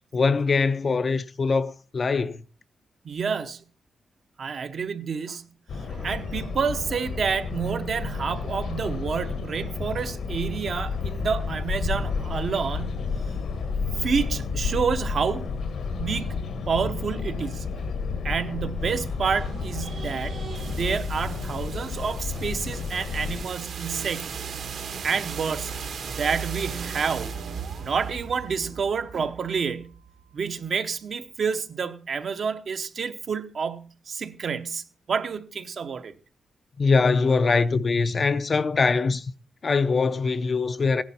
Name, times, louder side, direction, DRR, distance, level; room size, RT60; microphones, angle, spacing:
voice 1, 0.1-2.4 36.8-39.3 39.6-41.0, left 4 dB, 35° left, 0.5 m, -22 dB
voice 2, 3.0-3.6 4.4-5.4 5.9-13.0 14.0-15.6 15.9-17.7 18.2-24.4 25.0-25.7 26.0-27.3 27.8-29.9 30.3-36.1, right 6 dB, 50° right, 0.8 m, -29 dB
sound 1, 5.7-23.5, left 5 dB, 75° left, 1.4 m, -31 dB
sound 2, 18.8-30.7, right 6 dB, 70° right, 1.5 m, -37 dB
15.5 x 10.5 x 4.3 m
wide cardioid pair, 150°, 0 cm